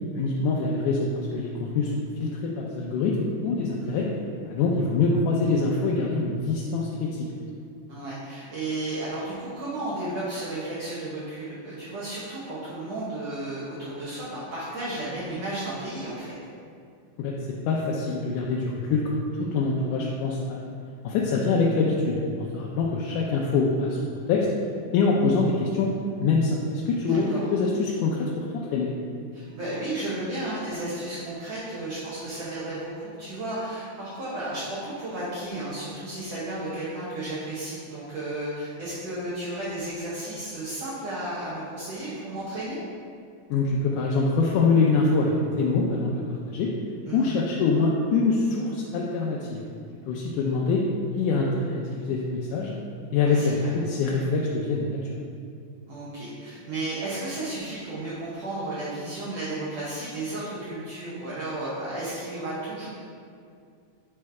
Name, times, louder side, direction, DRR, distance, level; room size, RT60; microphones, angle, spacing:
voice 1, 0.1-1.1 1.3-4.1 4.5-7.3 17.2-17.4 17.7-20.6 21.0-24.0 24.3-24.5 24.9-25.9 26.2-28.9 43.5-46.7 47.1-49.7 50.1-50.8 51.2-52.8 53.1-55.0, left 4 dB, 80° left, -3 dB, 2.1 m, -24 dB
voice 2, 7.9-16.3 27.0-27.4 29.3-42.8 47.1-47.4 53.2-53.6 55.9-62.9, right 2 dB, 60° right, -10 dB, 2.0 m, -33 dB
8.5 x 3.2 x 4.7 m, 2.4 s
omnidirectional pair, 3.7 m